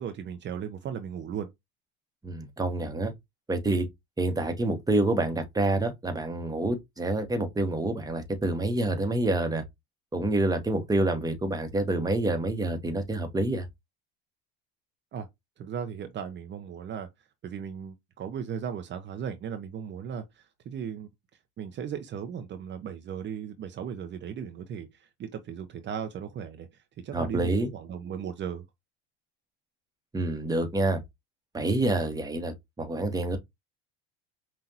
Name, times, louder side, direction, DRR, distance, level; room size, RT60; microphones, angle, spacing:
voice 1, 0.0-1.5 15.1-15.3 15.6-17.1 17.4-21.1 21.6-26.7 27.0-28.6, right 8 dB, 40° right, 0.7 m, -36 dB
voice 2, 2.2-3.1 3.5-3.9 4.2-9.6 10.1-13.7 27.1-27.7 30.1-31.0 31.5-33.4, right 2 dB, 15° right, 1.2 m, -27 dB
5.8 x 2.5 x 2.8 m
supercardioid pair, 90°, 29 cm